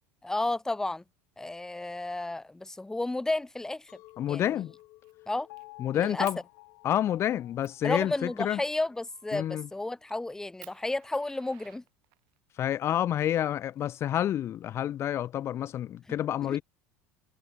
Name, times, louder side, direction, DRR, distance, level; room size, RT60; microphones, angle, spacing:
voice 1, 0.2-1.0 1.4-3.9 4.3-4.6 5.3-5.5 5.9-6.3 7.8-11.8 16.4-16.6, left 2 dB, 10° left, 1.2 m, -32 dB
Chink clink, 3.9-9.1, left 19 dB, 60° left, 4.5 m, -58 dB
Fire, 4.1-4.4 4.7-5.7 6.2-6.4 7.0-7.1 7.6-7.8 9.3-9.6 10.1-10.2 10.6-12.4 13.4-14.4, right 29 dB, 70° right, 7.4 m, -54 dB
voice 2, 4.2-4.7 5.8-6.4 6.8-8.6 9.3-9.7 12.6-16.6, left 11 dB, 40° left, 0.7 m, -29 dB
Piano, 5.5-9.6 10.1-10.2, left 25 dB, 80° left, 6.0 m, -53 dB
supercardioid pair, 110°, 7 cm